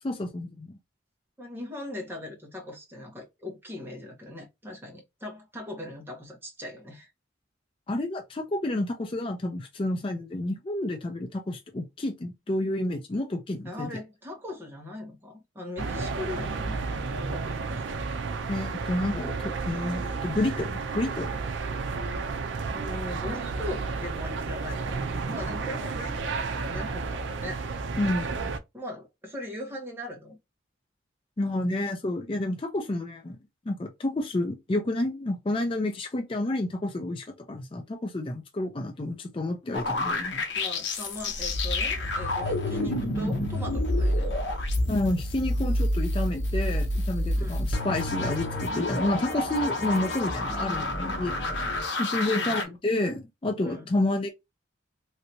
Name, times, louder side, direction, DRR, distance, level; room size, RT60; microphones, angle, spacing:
voice 1, 0.0-0.8 7.9-13.9 18.5-21.3 28.0-28.5 31.4-33.4 33.7-40.4 44.9-51.5 52.0-54.3, left 1 dB, 25° left, 0.4 m, -30 dB
voice 2, 1.4-7.1 13.6-17.0 17.3-18.0 22.7-27.6 28.7-30.4 40.5-44.5 47.4-47.7 52.2-52.8 53.6-53.9, left 1 dB, 10° right, 1.0 m, -40 dB
sound 1, 15.8-28.6, right 4 dB, 65° right, 0.5 m, -32 dB
sound 2, 39.7-52.7, left 1 dB, 65° left, 0.8 m, -28 dB
3.2 x 2.8 x 2.7 m
head